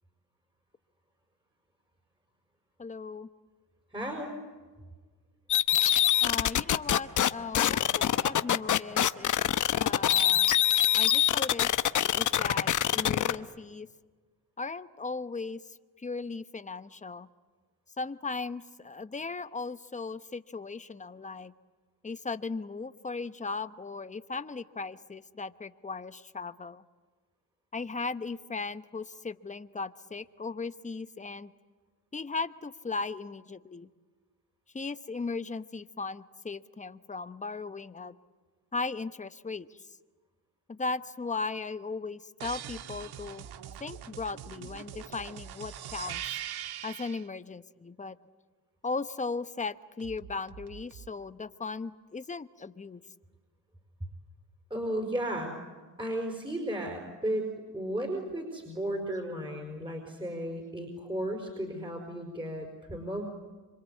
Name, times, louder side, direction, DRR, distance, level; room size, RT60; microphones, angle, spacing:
voice 1, 2.8-3.3 6.2-9.3 9.7-10.5 10.9-11.7 12.1-13.9 14.6-17.3 18.0-21.5 22.0-26.8 27.7-31.5 32.1-33.9 34.7-38.1 38.7-39.8 40.7-43.5 43.8-46.2 46.8-48.2 48.8-53.0, left 4 dB, 20° left, 12 dB, 1.0 m, -37 dB
voice 2, 3.9-4.4 54.7-55.6 56.0-63.2, right 1 dB, 10° right, 2 dB, 5.1 m, -34 dB
sound 1, 5.5-7.3 7.5-13.4, left 11 dB, 50° left, 0.9 m, -24 dB
sound 2, 42.4-47.2 50.0-51.1, right 10 dB, 70° right, 1.5 m, -42 dB
26.5 x 25.0 x 8.4 m, 1.4 s
cardioid pair, 85°, 40 cm